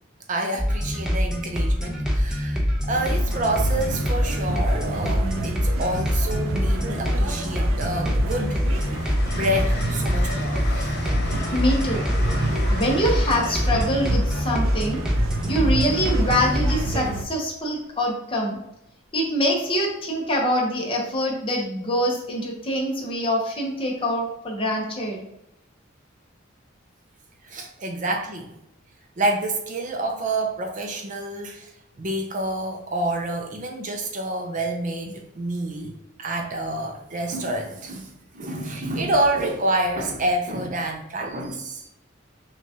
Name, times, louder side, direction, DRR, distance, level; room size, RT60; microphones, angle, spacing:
voice 1, 0.3-11.0 27.4-28.5 29.2-31.7 32.0-41.8, right 1 dB, 40° right, 3 dB, 0.5 m, -28 dB
sound 1, 0.6-16.8, equal, 5° right, 0.7 m, -24 dB
sound 2, 2.9-17.2, right 2 dB, 85° right, 0.5 m, -30 dB
Train, 7.7-16.0 17.6-17.8, left 3 dB, 50° left, 0.6 m, -38 dB
voice 2, 11.5-12.0 12.7-15.0 15.5-18.6 19.1-25.2, equal, 25° left, -1 dB, 0.9 m, -24 dB
5.9 x 2.4 x 2.8 m, 0.84 s
head